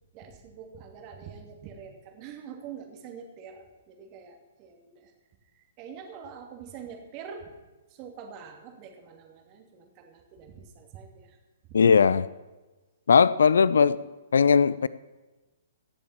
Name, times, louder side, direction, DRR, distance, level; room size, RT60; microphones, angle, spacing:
voice 1, 0.1-5.1 5.6-7.5 7.9-11.4 14.0-14.1, right 7 dB, 35° right, 4 dB, 2.5 m, -45 dB
voice 2, 11.7-12.3 13.1-14.0 14.3-14.9, left 6 dB, 70° left, 18 dB, 0.4 m, -19 dB
16.5 x 7.2 x 7.4 m, 1.2 s
figure-of-eight pair, 120°, 0 cm